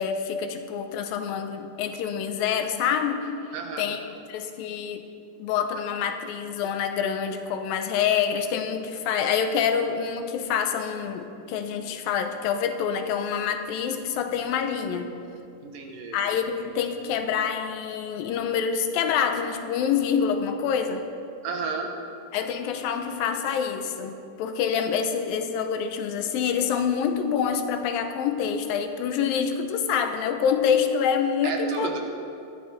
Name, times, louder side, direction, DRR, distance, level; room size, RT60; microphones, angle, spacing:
voice 1, 0.0-3.3 3.8-4.0 4.3-5.0 5.4-15.1 16.1-21.0 22.3-32.0, left 7 dB, 85° left, 7 dB, 2.7 m, -26 dB
voice 2, 3.5-4.0 15.6-16.2 21.4-21.9 31.4-32.0, right 5 dB, 70° right, 2 dB, 3.0 m, -32 dB
19.5 x 13.5 x 4.2 m, 2.5 s
omnidirectional pair, 4.1 m